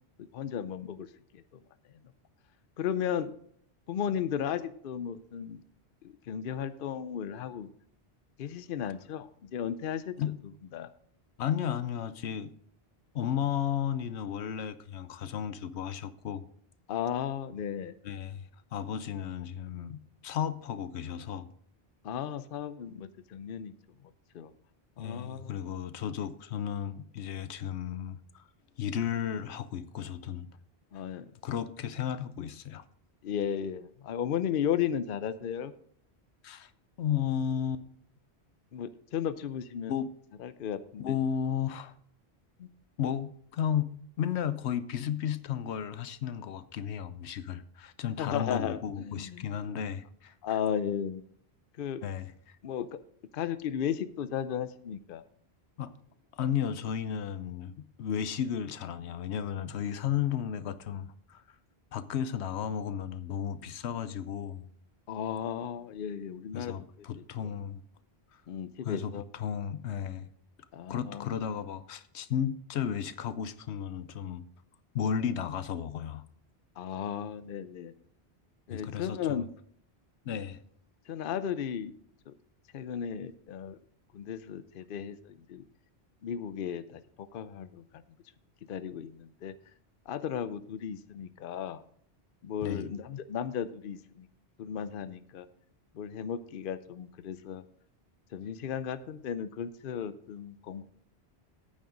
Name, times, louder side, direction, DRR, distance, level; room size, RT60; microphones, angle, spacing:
voice 1, 0.2-1.1 1.3-1.4 2.8-3.3 3.9-5.6 6.0-7.7 8.4-10.2 10.7-10.9 16.9-17.9 22.0-23.7 24.3-24.5 25.0-25.7 30.9-31.3 33.2-35.7 38.7-39.9 40.4-41.2 48.2-49.4 50.4-51.2 51.8-52.0 52.6-53.0 53.3-55.2 65.1-67.5 68.5-69.2 70.7-71.3 76.8-77.9 78.7-79.5 81.1-81.9 82.3-82.4 82.7-83.8 84.1-85.6 86.2-88.0 88.7-89.5 90.1-91.8 92.4-94.3 94.6-95.5 95.9-97.6 98.3-100.8, left 8 dB, 60° left, 12 dB, 0.8 m, -35 dB
voice 2, 11.4-12.5 13.1-16.4 18.0-18.4 18.7-21.5 25.0-28.4 28.8-30.5 31.4-32.8 36.4-36.7 37.0-37.8 39.9-40.1 41.0-41.9 42.6-42.7 43.0-43.9 44.2-50.6 52.0-52.6 55.8-55.9 56.3-61.4 61.9-64.7 66.5-67.8 68.8-70.3 70.9-74.5 74.9-76.2 78.7-79.4 80.2-80.6 92.6-92.9, left 9 dB, 80° left, 14 dB, 0.9 m, -34 dB
9.2 x 8.6 x 5.0 m, 0.62 s
omnidirectional pair, 1.1 m